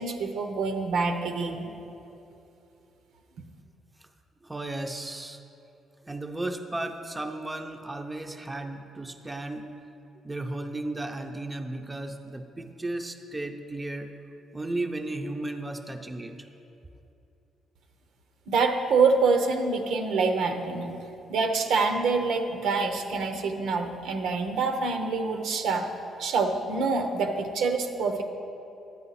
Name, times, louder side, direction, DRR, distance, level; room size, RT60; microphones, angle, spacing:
voice 1, 0.0-1.7 18.5-21.0 21.3-25.9 26.2-28.2, right 4 dB, 80° right, 5 dB, 0.8 m, -26 dB
voice 2, 4.4-5.4 6.0-9.7 10.2-14.1 14.5-16.5, right 2 dB, 15° right, 5 dB, 0.6 m, -34 dB
10.5 x 8.5 x 4.1 m, 2.8 s
cardioid pair, 90°, 0 cm